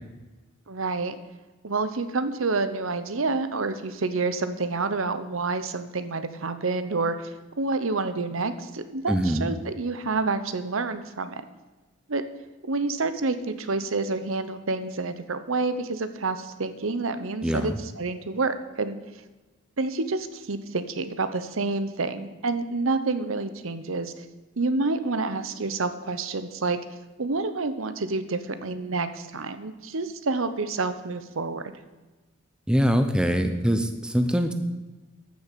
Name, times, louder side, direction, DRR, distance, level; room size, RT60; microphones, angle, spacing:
voice 1, 0.7-1.2 1.6-11.4 12.1-12.2 12.7-19.0 19.8-24.3 24.6-26.8 27.2-31.7, right 3 dB, 80° right, 11 dB, 0.9 m, -28 dB
voice 2, 9.1-9.5 17.4-17.8 32.7-34.5, equal, 5° right, 7 dB, 0.8 m, -23 dB
13.5 x 7.0 x 6.8 m, 1.2 s
head